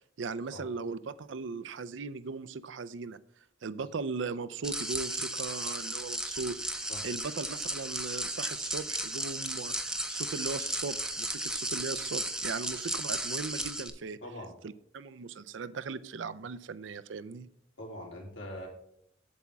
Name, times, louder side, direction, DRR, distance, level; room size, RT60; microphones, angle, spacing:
voice 1, 0.2-3.2 3.6-14.2 14.6-17.5, right 4 dB, 80° right, 14 dB, 0.5 m, -38 dB
sound 1, 4.6-13.9, right 1 dB, 5° right, 0.5 m, -35 dB
voice 2, 14.2-14.5 17.8-18.7, left 1 dB, 85° left, -1 dB, 3.1 m, -42 dB
8.4 x 7.2 x 3.5 m, 0.70 s
head